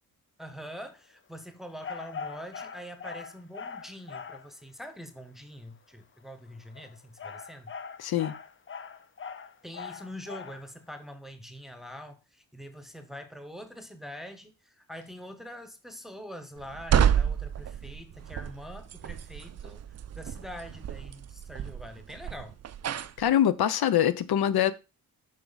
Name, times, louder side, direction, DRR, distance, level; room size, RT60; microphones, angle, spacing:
voice 1, 0.4-7.7 9.6-19.8 20.2-22.6, equal, ahead, 0.8 m, -44 dB
sound 1, 1.8-4.5 6.6-10.7, left 5 dB, 35° left, 0.6 m, -41 dB
voice 2, 8.0-8.3 23.2-24.7, left 10 dB, 75° left, 0.7 m, -24 dB
sound 2, 16.6-23.3, right 9 dB, 45° right, 0.4 m, -30 dB
7.5 x 5.9 x 4.0 m
wide cardioid pair, 175°, 38 cm